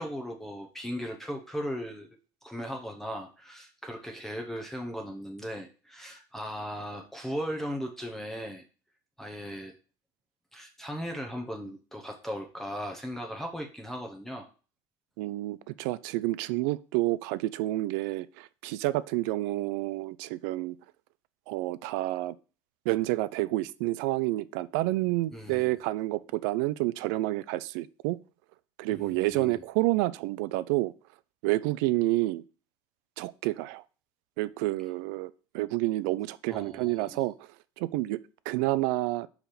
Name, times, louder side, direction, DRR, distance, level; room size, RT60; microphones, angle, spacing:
voice 1, 0.0-2.1 2.4-8.6 9.2-9.7 10.5-14.5 25.3-25.6 28.9-29.6 36.5-37.2, equal, 5° left, 0.8 m, -37 dB
voice 2, 15.2-20.8 21.5-22.3 22.9-28.2 28.8-30.9 31.4-32.4 33.2-33.8 34.4-37.5 37.8-38.2 38.5-39.3, right 18 dB, 85° right, 0.5 m, -29 dB
5.1 x 4.8 x 5.8 m
cardioid pair, 150°, 10 cm